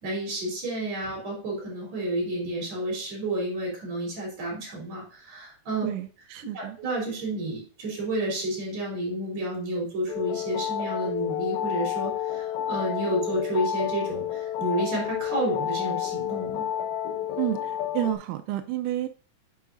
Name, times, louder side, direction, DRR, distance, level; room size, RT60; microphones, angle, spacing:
voice 1, 0.0-5.9 6.5-16.6, right 1 dB, 50° right, -2 dB, 4.6 m, -30 dB
voice 2, 5.8-6.8 17.4-19.1, right 14 dB, 85° right, 8 dB, 1.9 m, -30 dB
sound 1, 10.1-18.1, left 10 dB, 85° left, 1.6 m, -30 dB
9.2 x 5.7 x 2.5 m, 0.42 s
omnidirectional pair, 4.1 m